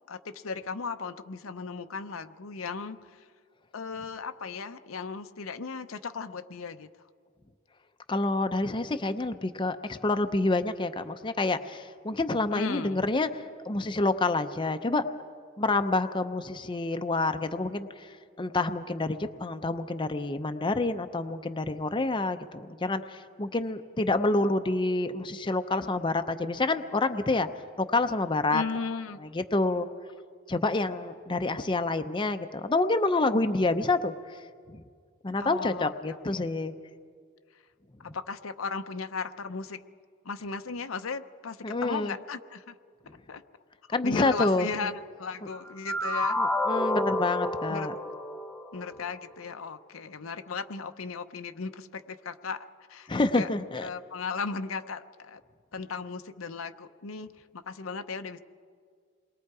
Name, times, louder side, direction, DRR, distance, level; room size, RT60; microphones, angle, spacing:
voice 1, 0.1-3.3 3.7-6.9 12.5-13.0 28.5-29.2 35.4-36.4 38.1-39.8 40.2-42.7 43.3-43.4 43.9-46.4 47.7-47.9 48.7-53.5 53.8-55.4 55.7-58.4, left 4 dB, 85° left, 9 dB, 0.8 m, -36 dB
voice 2, 8.1-15.0 15.6-27.5 27.8-28.6 29.3-29.9 30.5-34.1 34.7-34.8 35.2-36.7 41.6-42.1 43.9-44.7 46.4-47.9 53.1-53.9, left 2 dB, 25° left, 8 dB, 0.6 m, -28 dB
sound 1, 45.5-49.0, left 1 dB, 5° left, 1.2 m, -29 dB
28.0 x 22.0 x 4.8 m, 2.1 s
head